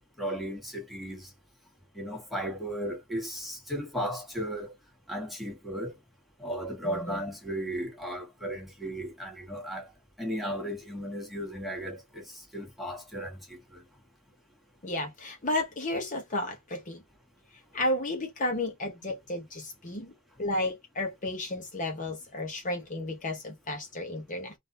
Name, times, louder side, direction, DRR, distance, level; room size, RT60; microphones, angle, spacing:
voice 1, 0.2-1.2 1.9-4.7 5.1-5.9 6.4-9.9 10.2-12.2 12.5-13.4 13.7-13.8, equal, ahead, 1.5 m, -35 dB
voice 2, 6.8-7.2 14.8-17.0 17.7-20.1 20.4-24.5, left 1 dB, 35° left, 1.0 m, -32 dB
3.8 x 2.6 x 4.1 m
head